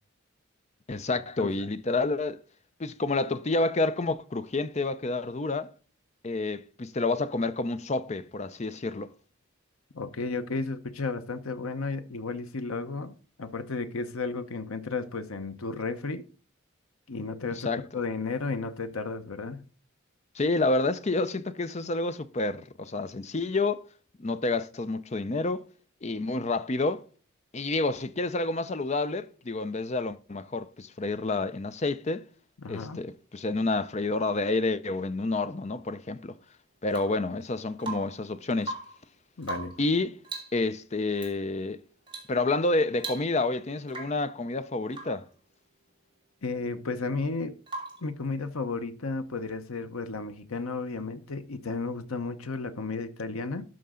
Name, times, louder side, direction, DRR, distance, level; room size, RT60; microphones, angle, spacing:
voice 1, 0.9-2.4 2.8-5.7 6.2-9.1 17.6-17.8 20.4-23.8 24.2-25.6 26.0-27.0 27.5-32.2 32.7-36.3 36.8-38.7 39.8-40.2 40.5-41.8 42.3-45.3, left 2 dB, 30° left, 0.5 m, -29 dB
voice 2, 9.9-16.2 17.1-19.6 32.6-33.0 39.4-39.7 46.4-47.5 48.0-53.6, left 3 dB, 85° left, 0.9 m, -33 dB
Rain / Water tap faucet / Drip, 36.9-37.3 37.8-38.3 38.6-39.0 39.4-39.9 40.2-40.6 41.2-41.4 42.1-42.4 42.6-42.7 43.0-43.5 43.9-44.3 44.9-45.2 47.7-48.1 50.0-50.1, right 3 dB, 25° right, 2.5 m, -39 dB
12.5 x 5.2 x 3.7 m
head